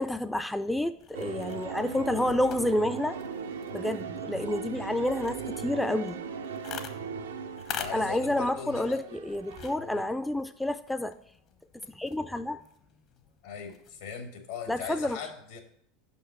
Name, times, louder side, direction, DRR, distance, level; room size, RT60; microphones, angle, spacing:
voice 1, 0.0-3.2 3.7-6.3 7.9-11.1 11.9-12.6 14.7-15.2, left 1 dB, 5° left, 0.3 m, -29 dB
sound 1, 0.9-14.3, left 8 dB, 50° left, 0.9 m, -47 dB
sound 2, 1.1-9.8, right 6 dB, 90° right, 0.5 m, -38 dB
voice 2, 7.7-9.0 9.8-10.1 13.4-15.6, left 6 dB, 75° left, 1.4 m, -39 dB
5.6 x 5.3 x 6.7 m
hypercardioid pair, 90°, 0 cm